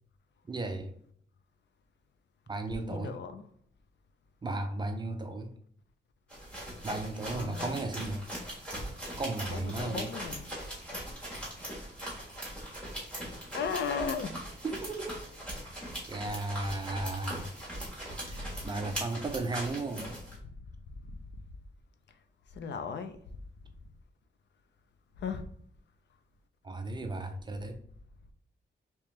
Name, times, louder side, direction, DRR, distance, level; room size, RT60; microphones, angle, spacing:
voice 1, 0.5-0.9 2.5-3.2 4.4-5.5 6.8-8.3 9.2-10.1 14.6-15.3 16.1-17.5 18.2-20.2 26.6-27.8, right 2 dB, 25° right, 0.3 m, -35 dB
voice 2, 2.7-3.4 7.3-7.8 9.5-10.5 10.9-11.0 13.5-14.3 18.3-18.6 21.1-21.2 22.5-23.2 25.2-25.5, left 5 dB, 65° left, 0.4 m, -36 dB
sound 1, 6.3-20.4, right 1 dB, 5° left, 1.3 m, -40 dB
3.5 x 2.9 x 3.0 m
wide cardioid pair, 175°, 20 cm